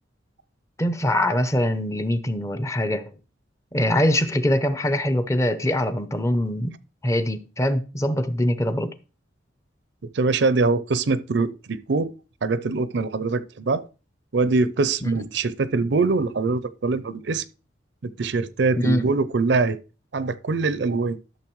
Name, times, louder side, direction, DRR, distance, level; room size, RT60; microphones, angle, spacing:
voice 1, 0.8-3.0 3.7-6.7 7.0-8.9 15.0-15.1 18.8-19.1, left 1 dB, 15° left, 0.6 m, -23 dB
voice 2, 10.1-12.1 12.4-13.8 14.3-17.5 18.0-19.8 20.1-21.2, right 3 dB, 60° right, 0.5 m, -23 dB
12.0 x 6.7 x 3.1 m
head